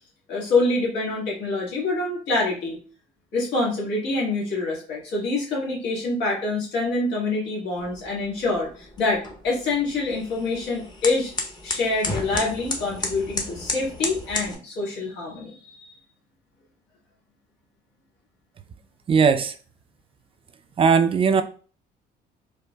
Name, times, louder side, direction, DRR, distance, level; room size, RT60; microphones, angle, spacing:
voice 1, 0.3-2.8 3.3-11.3 11.6-15.9, left 3 dB, 90° left, 1.7 m, -26 dB
sound 1, 7.8-14.5, left 2 dB, 25° left, 0.8 m, -33 dB
voice 2, 19.1-19.5 20.8-21.4, right 6 dB, 35° right, 0.4 m, -18 dB
4.5 x 2.5 x 2.3 m
cardioid pair, 110°, 17 cm